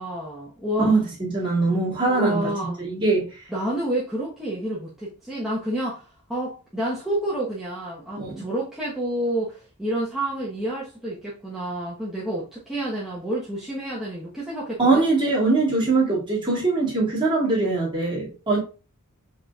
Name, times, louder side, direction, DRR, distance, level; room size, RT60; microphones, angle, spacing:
voice 1, 0.0-1.0 2.1-2.8 3.5-15.1, right 1 dB, ahead, 1.0 m, -29 dB
voice 2, 0.8-2.5 2.8-3.3 8.2-8.4 14.8-18.6, right 3 dB, 20° right, 2.3 m, -22 dB
5.0 x 4.1 x 2.4 m
head